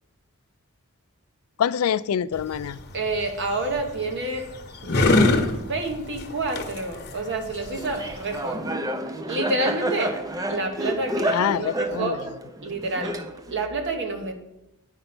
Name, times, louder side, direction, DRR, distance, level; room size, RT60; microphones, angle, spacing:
voice 1, 1.6-2.8 11.3-12.2, left 8 dB, 75° left, 0.3 m, -25 dB
sound 1, 2.3-8.4, left 2 dB, 50° left, 1.0 m, -26 dB
voice 2, 2.9-4.5 4.8-5.0 5.5-8.7 9.3-10.2 10.5-12.2 12.6-13.2 13.5-14.3, right 2 dB, 55° right, 1.3 m, -28 dB
Laughter, 7.8-13.6, right 1 dB, 15° right, 0.5 m, -29 dB
8.9 x 5.3 x 6.0 m
head